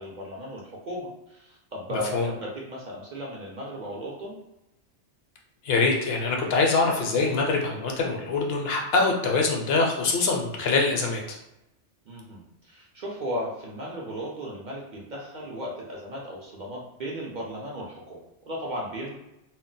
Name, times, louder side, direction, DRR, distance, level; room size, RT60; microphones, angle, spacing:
voice 1, 0.0-4.4 12.1-19.1, equal, 55° right, -3 dB, 0.5 m, -36 dB
voice 2, 1.9-2.3 5.6-11.4, left 3 dB, 65° left, 1 dB, 0.7 m, -24 dB
2.2 x 2.1 x 3.8 m, 0.91 s
omnidirectional pair, 1.2 m